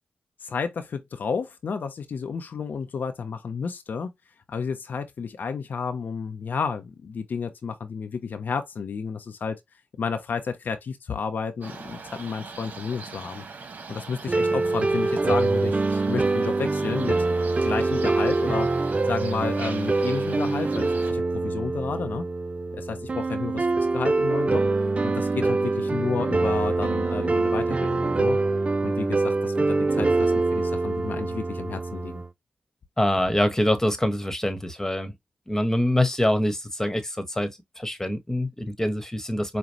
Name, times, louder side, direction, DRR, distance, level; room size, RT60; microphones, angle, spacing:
voice 1, 0.4-4.1 4.5-9.6 10.0-13.4 13.9-17.2 17.6-22.2 22.7-23.7 23.9-24.6 25.0-28.4 28.8-32.2, left 5 dB, 70° left, 0.7 m, -31 dB
sound 1, 11.6-21.1, right 4 dB, 60° right, 1.3 m, -41 dB
sound 2, 14.3-32.3, right 3 dB, 40° right, 0.5 m, -24 dB
voice 2, 33.0-35.1 35.5-37.5 37.8-39.6, left 1 dB, 15° left, 1.3 m, -25 dB
5.2 x 2.3 x 3.0 m
supercardioid pair, 40°, 3 cm